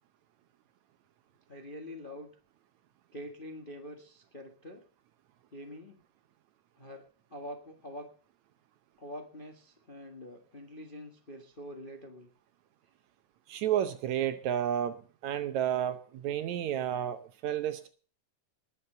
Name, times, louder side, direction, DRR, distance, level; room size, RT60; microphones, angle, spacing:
voice 1, 1.5-2.3 3.1-4.8 5.5-6.0 6.8-7.0 7.3-8.1 9.0-12.3, equal, 30° left, 3 dB, 0.9 m, -45 dB
voice 2, 13.5-17.9, right 10 dB, 70° right, 11 dB, 2.0 m, -31 dB
19.5 x 7.2 x 6.6 m, 0.40 s
omnidirectional pair, 3.7 m